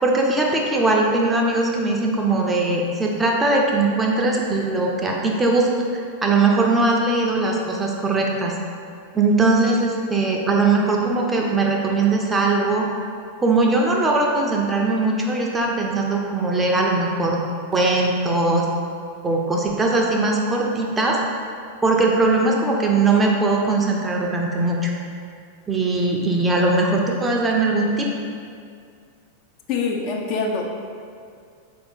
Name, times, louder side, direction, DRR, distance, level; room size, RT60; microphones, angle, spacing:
voice 1, 0.0-8.5 9.1-12.9 13.4-17.4 17.7-18.7 19.2-21.2 21.8-24.9 25.7-28.1, right 3 dB, 15° right, -1 dB, 0.5 m, -20 dB
voice 2, 29.7-30.6, left 4 dB, 40° left, 1 dB, 0.4 m, -24 dB
4.5 x 2.6 x 3.4 m, 2.3 s
figure-of-eight pair, 90°, 0 cm